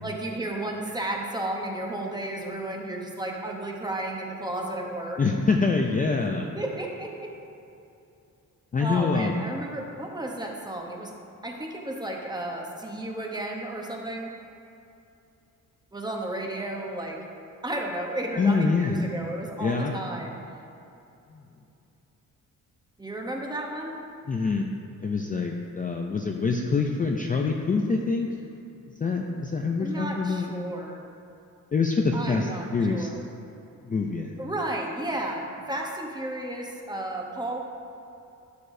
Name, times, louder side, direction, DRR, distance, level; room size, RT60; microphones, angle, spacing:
voice 1, 0.0-5.2 6.6-7.3 8.8-11.1 11.4-14.3 15.9-17.2 17.6-20.4 23.0-23.9 29.8-31.0 32.1-33.2 34.4-37.6, right 1 dB, 10° right, 0 dB, 0.9 m, -33 dB
voice 2, 5.2-6.5 8.7-9.5 18.4-19.1 19.6-20.0 21.3-21.4 24.3-24.7 25.0-28.3 29.0-30.5 31.7-33.1 33.8-34.3, left 4 dB, 25° left, 1 dB, 0.4 m, -25 dB
12.5 x 6.8 x 2.7 m, 2.7 s
wide cardioid pair, 145°, 33 cm